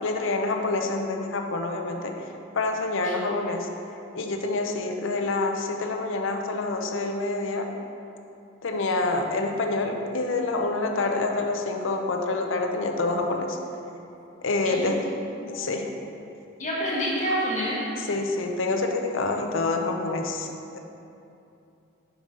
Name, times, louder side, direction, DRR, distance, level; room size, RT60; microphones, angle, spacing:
voice 1, 0.0-2.1 2.5-3.7 4.1-7.7 8.6-13.6 14.4-15.0 15.5-15.9 18.1-20.5, left 3 dB, 70° left, 3 dB, 0.6 m, -27 dB
voice 2, 16.6-17.8, equal, 35° left, -6 dB, 1.5 m, -28 dB
5.5 x 4.9 x 5.1 m, 2.7 s
head